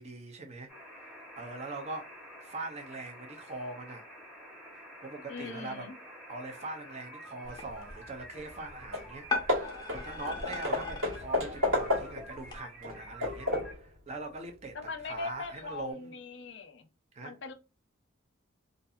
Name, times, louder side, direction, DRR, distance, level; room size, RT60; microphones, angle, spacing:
voice 1, 0.0-2.1 2.4-4.0 4.7-5.9 6.3-9.3 9.6-14.8 15.0-16.1 17.1-17.3, right 2 dB, 30° right, 0.5 m, -42 dB
sound 1, 0.7-13.7, equal, 5° right, 1.0 m, -49 dB
voice 2, 5.3-6.0 14.7-16.9 17.2-17.5, left 4 dB, 60° left, 0.6 m, -41 dB
sound 2, 7.4-12.6, left 3 dB, 20° left, 0.8 m, -40 dB
Hammer / Wood, 8.6-8.7 8.9-9.1 9.5-12.3 12.8-13.8, left 2 dB, 85° right, 1.5 m, -31 dB
2.6 x 2.5 x 2.3 m
head